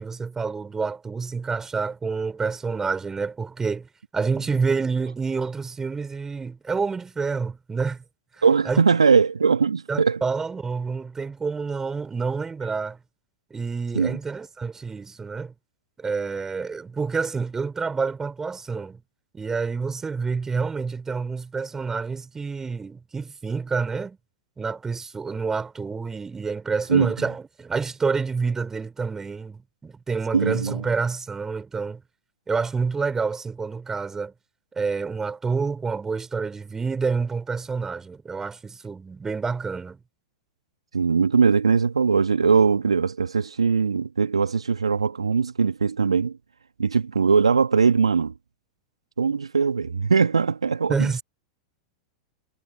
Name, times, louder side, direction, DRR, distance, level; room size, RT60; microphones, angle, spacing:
voice 1, 0.0-3.9 4.1-8.0 8.4-8.8 9.9-13.0 13.5-15.5 16.0-19.0 19.3-24.2 24.6-32.0 32.5-34.3 34.7-40.0 50.9-51.2, right 4 dB, 15° right, 4.3 m, -28 dB
voice 2, 8.4-10.2 13.9-14.2 26.9-27.1 30.3-30.8 40.9-46.4 46.8-48.3 49.2-51.1, right 5 dB, 80° right, 1.5 m, -20 dB
figure-of-eight pair, 95°, 3 cm